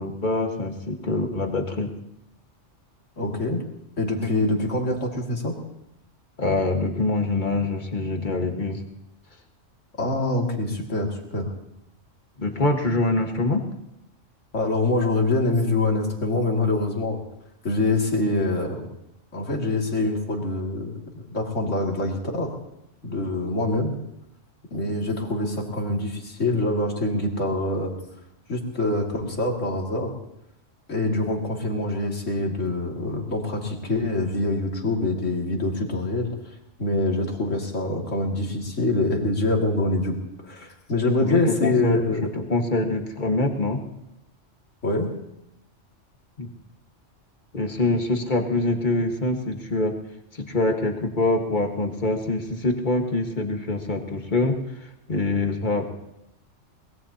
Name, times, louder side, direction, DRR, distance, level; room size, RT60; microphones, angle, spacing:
voice 1, 0.0-1.9 6.4-8.8 12.4-13.6 41.2-43.8 46.4-46.5 47.5-50.0 50.3-54.6 55.1-55.9, left 2 dB, 40° left, 3 dB, 1.8 m, -24 dB
voice 2, 3.2-3.6 4.0-5.6 10.0-11.5 14.5-17.2 17.6-18.9 19.3-22.5 23.0-23.9 24.7-27.9 28.5-30.1 30.9-36.5 36.8-40.1 40.4-42.3 44.8-45.1, left 2 dB, 75° left, 0 dB, 2.8 m, -25 dB
23.5 x 20.5 x 2.9 m, 0.84 s
omnidirectional pair, 1.3 m